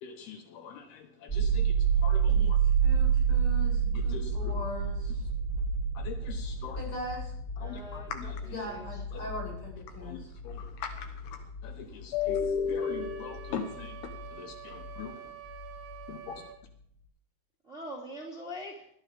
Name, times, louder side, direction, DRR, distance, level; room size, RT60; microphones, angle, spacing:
voice 1, 0.0-1.7 2.0-2.6 3.9-4.5 6.0-6.8 7.6-8.3 10.0-10.2 10.4-11.1 11.6-13.9 14.3-15.2 16.1-16.4, left 6 dB, 80° left, 5 dB, 3.2 m, -37 dB
sound 1, 1.3-15.1 15.4-16.4, right 6 dB, 10° left, 3.8 m, -30 dB
voice 2, 2.4-5.3 6.8-7.3 8.4-10.3, left 1 dB, 30° left, -3 dB, 8.9 m, -40 dB
voice 3, 7.6-9.0 11.8-12.0 17.6-18.9, equal, 20° right, -3 dB, 2.4 m, -44 dB
Wind instrument woodwind instrument, 12.8-16.6, right 10 dB, 80° right, 3.9 m, -47 dB
20.5 x 13.5 x 3.6 m, 0.65 s
omnidirectional pair, 4.6 m